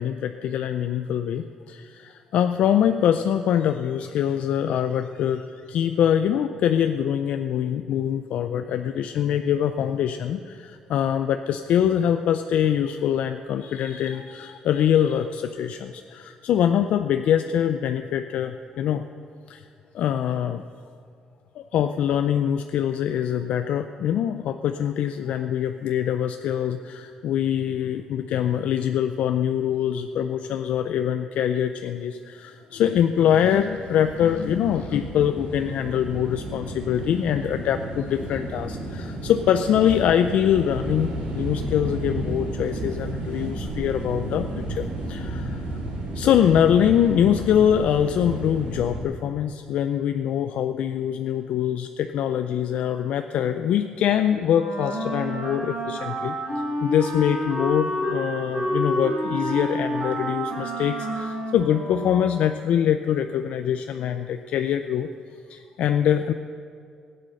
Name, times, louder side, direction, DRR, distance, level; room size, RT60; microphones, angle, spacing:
voice 1, 0.0-19.0 19.5-19.6 19.9-20.6 21.6-45.6 46.1-65.1 65.5-66.3, left 9 dB, 65° left, 8 dB, 0.4 m, -24 dB
sound 1, 33.5-49.0, right 1 dB, 65° right, 4.2 m, -32 dB
Wind instrument woodwind instrument, 54.4-62.7, equal, 85° right, 4.1 m, -29 dB
15.5 x 8.7 x 6.5 m, 2.3 s
cardioid pair, 150°, 2 cm